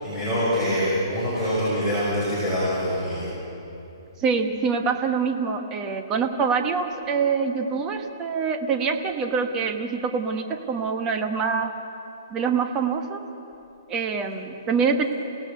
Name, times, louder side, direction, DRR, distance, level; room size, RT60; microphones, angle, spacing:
voice 1, 0.0-3.3, equal, 5° left, -12 dB, 5.8 m, -25 dB
voice 2, 4.2-11.7 12.3-13.2 13.9-15.1, right 5 dB, 20° right, 5 dB, 1.3 m, -25 dB
29.0 x 17.5 x 6.8 m, 2.9 s
hypercardioid pair, 165°, 2 cm